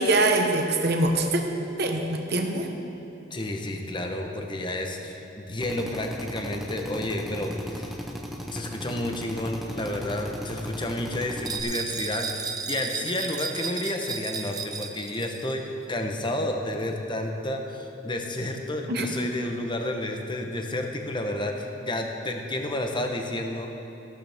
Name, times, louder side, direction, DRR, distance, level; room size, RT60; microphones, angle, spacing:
voice 1, 0.0-1.4 1.8-2.7 18.9-19.1, right 2 dB, 55° right, 3 dB, 1.1 m, -23 dB
voice 2, 3.3-5.2 5.5-8.0 8.5-23.7, left 1 dB, 25° left, 3 dB, 0.9 m, -31 dB
Drill, 5.6-11.6, equal, ahead, 0.8 m, -37 dB
sound 1, 11.5-15.6, right 5 dB, 20° right, 0.5 m, -34 dB
15.5 x 12.0 x 3.5 m, 3.0 s
head